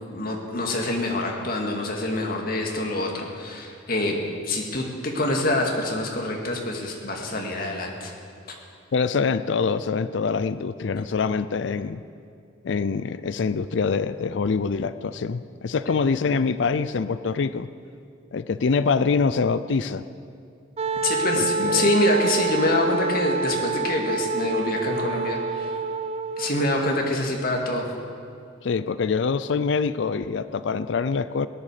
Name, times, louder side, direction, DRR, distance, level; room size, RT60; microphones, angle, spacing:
voice 1, 0.1-8.1 8.5-8.6 21.0-25.7 26.4-27.9, left 1 dB, 50° left, 1 dB, 2.1 m, -25 dB
voice 2, 8.9-12.0 12.6-17.7 18.3-20.1 21.4-21.9 28.6-31.5, left 5 dB, 65° left, 14 dB, 0.4 m, -25 dB
Wind instrument woodwind instrument, 20.8-26.7, right 4 dB, 30° right, 0.4 m, -27 dB
18.0 x 10.5 x 6.7 m, 2.4 s
head